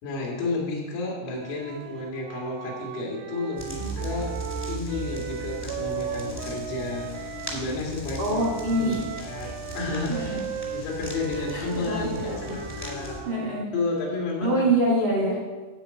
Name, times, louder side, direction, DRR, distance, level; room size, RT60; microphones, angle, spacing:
voice 1, 0.0-4.3 4.7-8.2 8.7-10.4 10.7-13.2 13.7-14.7, left 3 dB, 90° left, -3 dB, 5.0 m, -32 dB
Wind instrument woodwind instrument, 1.3-7.7 8.4-14.4, right 9 dB, 90° right, 3.3 m, -37 dB
sound 1, 3.6-13.2, equal, 20° left, 0.6 m, -37 dB
voice 2, 8.2-9.0 10.1-10.4 11.3-12.6 13.2-13.6 14.4-15.4, right 1 dB, 65° right, -3 dB, 1.1 m, -26 dB
12.5 x 4.4 x 8.4 m, 1.3 s
omnidirectional pair, 5.7 m